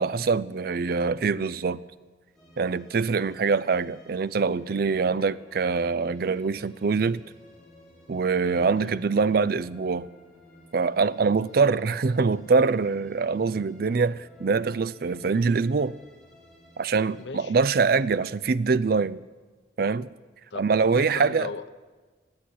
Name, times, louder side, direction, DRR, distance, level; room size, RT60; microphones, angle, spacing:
voice 1, 0.0-1.8 2.6-7.2 8.1-10.1 10.7-16.0 16.8-19.2 19.8-20.1 20.6-21.5, right 4 dB, 60° right, 0.5 m, -24 dB
sound 1, 2.3-17.2, left 1 dB, ahead, 4.5 m, -54 dB
voice 2, 8.6-8.9 17.2-17.5 20.5-20.6 20.9-21.7, left 4 dB, 85° left, 0.8 m, -37 dB
16.0 x 8.8 x 10.0 m
head